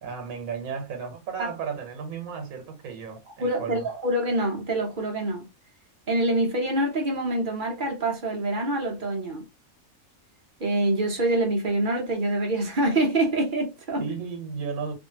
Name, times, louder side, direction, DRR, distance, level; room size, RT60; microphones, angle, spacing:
voice 1, 0.0-3.9 14.0-14.9, right 6 dB, 70° right, 1.3 m, -34 dB
voice 2, 3.4-5.4 6.1-9.5 10.6-14.0, right 1 dB, 45° right, 0.8 m, -25 dB
2.6 x 2.6 x 2.7 m
omnidirectional pair, 1.5 m